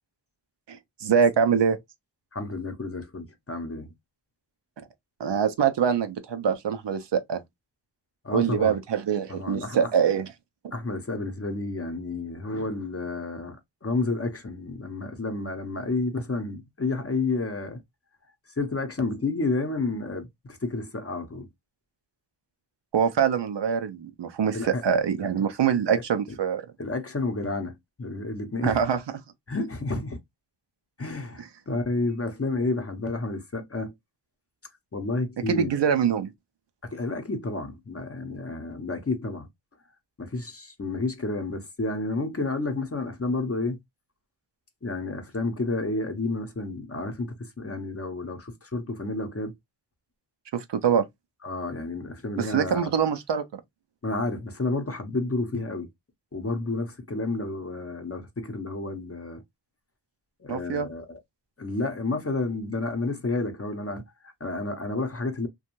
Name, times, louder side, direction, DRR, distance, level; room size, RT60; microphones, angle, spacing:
voice 1, 0.7-1.8 4.8-4.9 5.2-7.4 8.3-10.3 22.9-26.6 28.6-29.0 35.5-36.3 50.5-51.1 52.4-53.4 60.5-60.9, right 7 dB, 75° right, 0.5 m, -24 dB
voice 2, 2.3-3.9 8.2-8.8 9.3-9.9 10.7-17.8 18.6-21.5 24.5-24.8 26.8-28.8 29.5-30.2 31.0-33.9 34.9-35.7 36.8-39.5 40.2-43.8 44.8-49.5 51.4-52.9 54.0-55.9 56.3-59.4 60.4-61.2 61.6-65.5, left 3 dB, 35° left, 0.7 m, -30 dB
2.5 x 2.2 x 2.9 m
wide cardioid pair, 50°, 43 cm